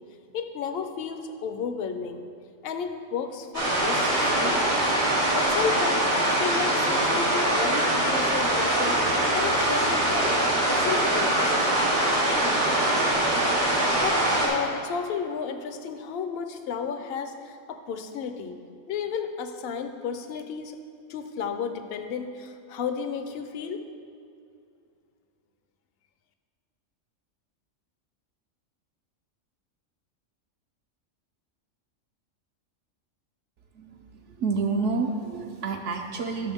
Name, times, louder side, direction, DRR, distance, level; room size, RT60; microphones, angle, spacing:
voice 1, 0.3-2.2 2.6-4.6 5.3-10.4 10.7-11.8 14.0-18.6 18.9-20.8 21.1-23.8, left 6 dB, 60° left, 8 dB, 0.7 m, -32 dB
sound 1, 3.5-14.5, right 1 dB, 90° right, 2.8 m, -23 dB
voice 2, 33.7-36.5, right 4 dB, 70° right, 2 dB, 0.9 m, -29 dB
11.0 x 6.4 x 3.5 m, 2.4 s
omnidirectional pair, 1.3 m